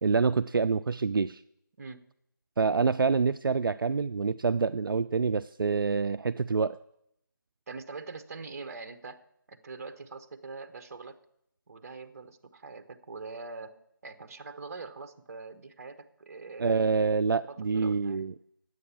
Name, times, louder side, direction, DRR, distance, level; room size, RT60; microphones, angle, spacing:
voice 1, 0.0-1.4 2.6-6.8 16.6-18.3, right 5 dB, 75° right, 12 dB, 0.4 m, -26 dB
voice 2, 7.7-9.2 9.5-11.2 11.7-16.8 17.5-18.2, right 4 dB, 45° right, 9 dB, 1.0 m, -43 dB
9.6 x 8.1 x 7.1 m, 0.74 s
figure-of-eight pair, 160°, 12 cm